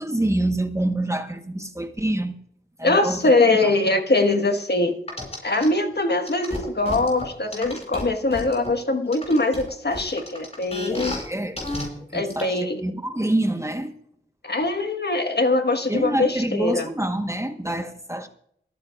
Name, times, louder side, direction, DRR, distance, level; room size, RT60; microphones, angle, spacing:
voice 1, 0.0-2.4 2.8-3.2 3.6-3.7 10.9-11.6 12.1-13.9 15.9-18.3, right 1 dB, 15° right, 1.2 m, -26 dB
voice 2, 2.8-5.0 5.4-11.2 12.1-12.8 14.4-16.9, left 2 dB, 50° left, 1.5 m, -22 dB
sound 1, 5.1-5.7 6.2-8.7 9.1-11.2 11.6-11.8 12.3-12.4, left 1 dB, 30° left, 5.9 m, -32 dB
28.5 x 9.6 x 2.4 m
cardioid pair, 45°, 21 cm